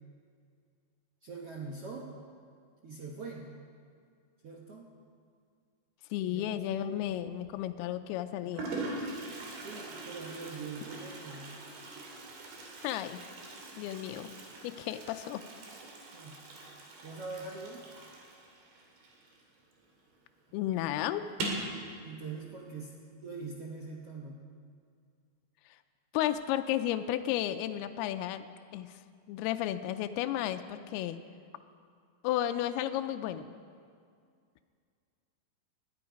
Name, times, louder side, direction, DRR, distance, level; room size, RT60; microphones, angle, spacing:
voice 1, 1.2-2.1 2.8-3.5 4.4-4.9 6.2-7.1 9.6-11.6 16.1-16.4 17.0-17.8 22.0-24.4, right 4 dB, 65° right, -2 dB, 1.5 m, -43 dB
voice 2, 6.1-8.7 12.8-13.2 13.8-14.3 14.6-15.4 20.5-21.2 26.1-28.5 28.7-29.0 29.3-31.2 32.2-33.5, left 12 dB, 85° left, 9 dB, 2.5 m, -33 dB
Toilet flush, 7.0-7.5 8.2-8.3 8.5-19.8 20.1-20.2 20.5-20.6 21.3-21.7, right 2 dB, 90° right, 4.5 m, -42 dB
20.5 x 13.5 x 5.2 m, 2.2 s
omnidirectional pair, 4.6 m